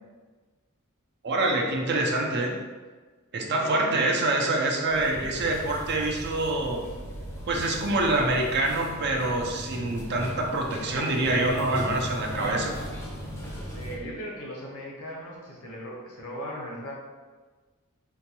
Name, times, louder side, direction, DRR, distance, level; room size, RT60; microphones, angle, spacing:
voice 1, 1.2-2.6 3.3-6.8 7.5-12.7, right 2 dB, 50° right, 0 dB, 0.5 m, -26 dB
voice 2, 3.5-4.1 13.7-16.9, equal, 80° left, -2 dB, 0.8 m, -38 dB
sound 1, 4.9-14.0, equal, 10° left, 0.5 m, -37 dB
3.8 x 2.2 x 2.9 m, 1.4 s
head